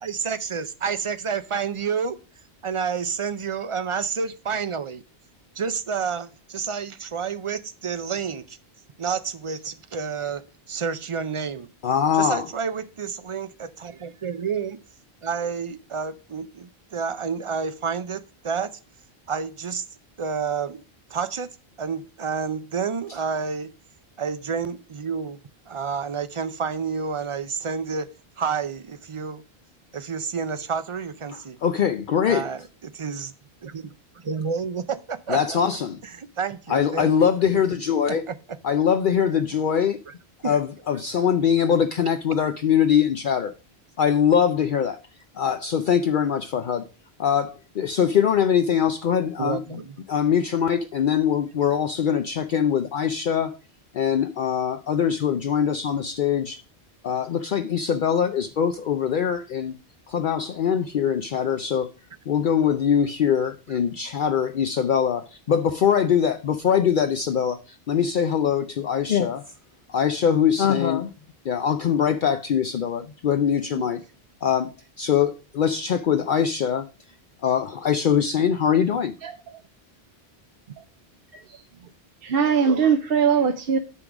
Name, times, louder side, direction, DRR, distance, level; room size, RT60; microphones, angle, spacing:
voice 1, 0.0-2.2 2.6-5.0 5.6-8.6 9.0-11.7 12.1-14.8 15.2-18.8 19.3-19.9 20.2-20.8 21.1-23.7 24.2-25.4 25.7-28.1 28.4-29.4 29.9-31.6 32.3-33.3 33.6-35.6 36.1-37.3 38.0-38.4 40.1-40.2 40.4-40.5 49.4-49.9, right 6 dB, 40° right, 0.5 m, -29 dB
voice 2, 11.8-12.5 31.6-32.4 35.3-36.0 36.7-38.2 38.6-40.0 40.4-43.5 44.0-45.0 45.4-46.9 47.2-49.8 50.1-53.6 53.9-56.6 57.0-59.7 60.1-61.9 62.3-69.4 69.9-71.1 71.4-74.0 74.4-76.9 77.4-79.1, left 8 dB, 60° left, 0.7 m, -22 dB
voice 3, 82.2-83.8, right 6 dB, 65° right, 0.9 m, -21 dB
9.8 x 3.8 x 5.9 m
omnidirectional pair, 1.1 m